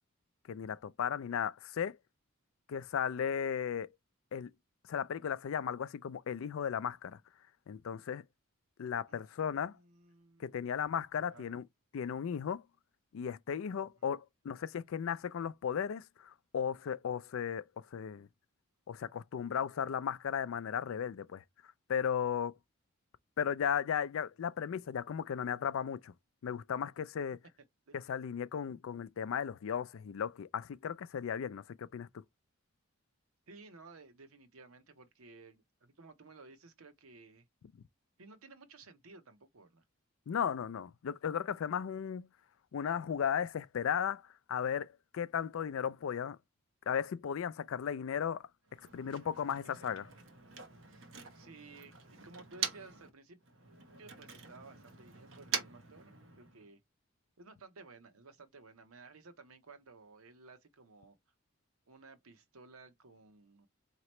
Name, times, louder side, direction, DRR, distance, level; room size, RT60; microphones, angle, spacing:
voice 1, 0.5-2.0 2.7-3.9 4.3-4.5 4.9-7.2 7.7-8.2 8.8-9.7 10.4-11.6 11.9-12.6 13.1-18.3 18.9-21.4 21.9-22.5 23.4-26.1 26.4-27.4 27.9-32.1 40.3-42.3 42.7-44.2 44.5-46.4 46.9-48.4 48.9-50.1, left 8 dB, 70° left, 0.3 m, -35 dB
voice 2, 9.1-10.6 11.1-11.6 13.8-13.9 27.9-28.0 28.5-28.6 33.5-37.4 38.2-39.8 51.3-53.4 54.0-56.8 57.4-61.2 61.9-63.7, right 3 dB, 85° right, 0.9 m, -56 dB
Motor vehicle (road), 48.6-53.1 53.4-56.7, right 7 dB, 65° right, 0.9 m, -44 dB
4.2 x 2.9 x 3.0 m
head